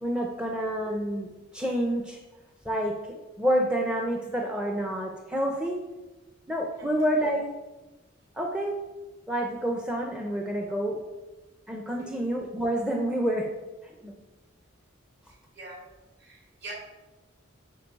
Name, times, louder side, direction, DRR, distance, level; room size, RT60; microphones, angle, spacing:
voice 1, 0.0-2.2 2.6-5.8 6.5-7.4 8.4-8.8 9.3-11.0 11.7-13.5 13.8-14.2, equal, 5° right, 1 dB, 0.6 m, -28 dB
voice 2, 15.3-15.8 16.2-16.7, right 2 dB, 50° right, -2 dB, 2.7 m, -44 dB
9.2 x 4.8 x 5.2 m, 1.1 s
head